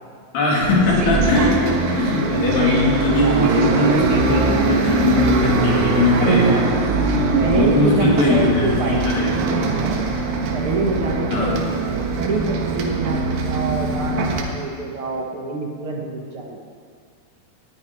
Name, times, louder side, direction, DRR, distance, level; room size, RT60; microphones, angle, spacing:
voice 1, 0.3-6.5 7.1-9.3 11.3-11.6, left 3 dB, 70° left, -4 dB, 5.1 m, -20 dB
Bus, 0.6-14.4, right 4 dB, 80° right, 3.6 m, -21 dB
voice 2, 2.9-3.5 6.1-6.9 7.3-9.1 9.4-10.0 10.5-16.6, right 3 dB, 60° right, 0 dB, 1.4 m, -26 dB
19.0 x 13.5 x 4.8 m, 2.1 s
omnidirectional pair, 4.8 m